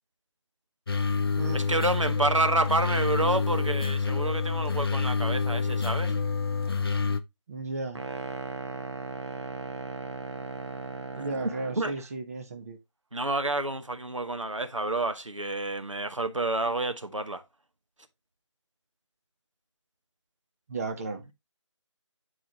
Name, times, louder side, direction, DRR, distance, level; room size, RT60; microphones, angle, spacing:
sound 1, 0.9-7.2, left 4 dB, 50° left, 0.7 m, -27 dB
voice 1, 1.5-6.1 11.2-11.3 11.8-12.0 13.1-17.4, right 2 dB, 85° right, 1.1 m, -29 dB
voice 2, 7.5-8.0 11.2-12.8 20.7-21.2, right 3 dB, 30° right, 1.0 m, -34 dB
sound 2, 7.9-11.9, right 3 dB, 65° right, 1.1 m, -37 dB
8.8 x 4.6 x 3.0 m
figure-of-eight pair, 160°, 16 cm